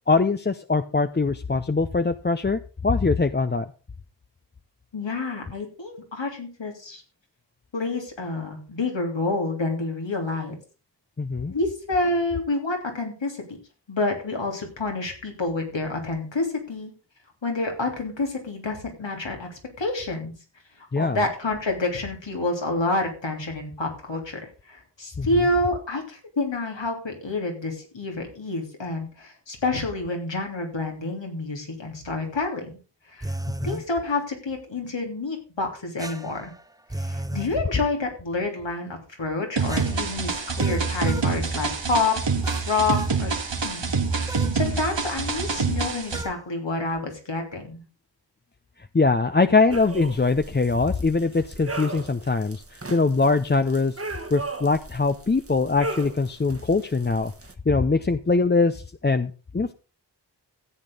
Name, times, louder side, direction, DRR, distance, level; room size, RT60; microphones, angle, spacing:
voice 1, 0.1-3.7 11.2-11.5 20.9-21.2 25.2-25.3 33.6-33.8 48.9-57.3 57.7-59.7, left 3 dB, 25° left, 10 dB, 0.6 m, -22 dB
voice 2, 4.9-7.0 7.7-10.5 11.5-13.4 13.9-16.9 17.4-20.3 20.9-24.4 24.7-32.8 33.1-33.3 33.6-36.5 36.9-42.1 42.7-43.3 43.6-47.8, left 2 dB, 90° left, 2 dB, 3.2 m, -28 dB
sound 1, 33.2-33.9 36.0-37.5 39.7-41.3 42.4-43.2 44.3-44.6 46.1-46.4, right 1 dB, 10° right, 0.8 m, -35 dB
sound 2, 39.6-46.2, right 4 dB, 90° right, 1.8 m, -26 dB
sound 3, 49.7-57.5, right 2 dB, 30° right, 1.3 m, -37 dB
13.5 x 8.8 x 3.9 m, 0.35 s
wide cardioid pair, 60°, 43 cm